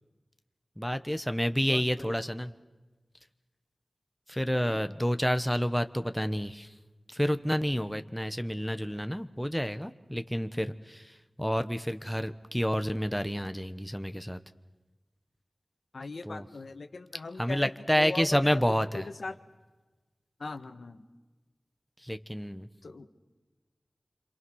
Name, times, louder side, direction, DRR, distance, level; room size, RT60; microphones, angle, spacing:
voice 1, 0.8-2.5 4.3-6.7 7.1-14.4 16.3-16.5 17.4-19.1 22.0-22.7, equal, 5° left, 9 dB, 1.1 m, -29 dB
voice 2, 1.6-2.1 15.9-19.4 20.4-21.0 22.8-23.1, left 3 dB, 85° left, 7 dB, 1.7 m, -40 dB
28.0 x 26.5 x 6.4 m, 1.2 s
wide cardioid pair, 55°, 0 cm